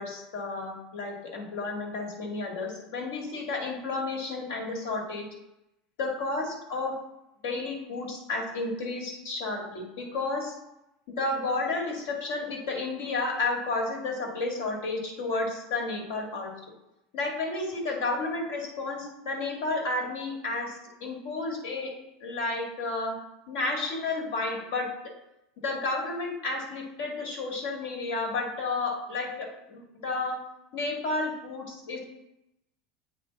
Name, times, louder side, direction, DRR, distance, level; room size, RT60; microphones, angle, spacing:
voice 1, 0.0-5.2 6.0-7.0 7.4-10.5 11.1-16.5 17.1-21.9 22.2-23.2 23.5-24.9 25.6-30.4 30.7-32.0, left 3 dB, 80° left, 0 dB, 1.8 m, -31 dB
8.5 x 3.4 x 4.0 m, 0.88 s
supercardioid pair, 140°, 0 cm